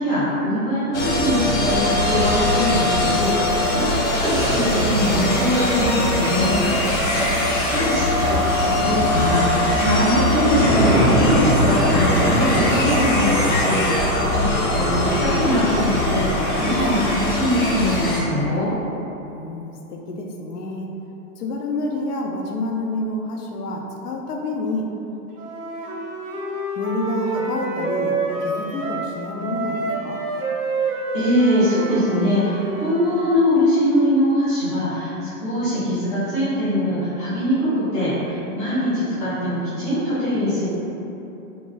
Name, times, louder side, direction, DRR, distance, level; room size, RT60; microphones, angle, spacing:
voice 1, 0.0-6.6 7.5-14.5 14.7-18.7 31.1-40.7, equal, 5° left, -16 dB, 0.4 m, -22 dB
sound 1, 0.9-18.2, left 1 dB, 50° left, 0.8 m, -20 dB
voice 2, 7.6-8.2 19.2-20.9 21.4-24.9 26.8-30.2, left 2 dB, 80° left, 1 dB, 0.7 m, -29 dB
Wind instrument woodwind instrument, 25.3-29.1 29.4-33.4, right 3 dB, 85° right, 0.9 m, -27 dB
3.0 x 2.5 x 3.9 m, 2.9 s
hypercardioid pair, 155°, 45 cm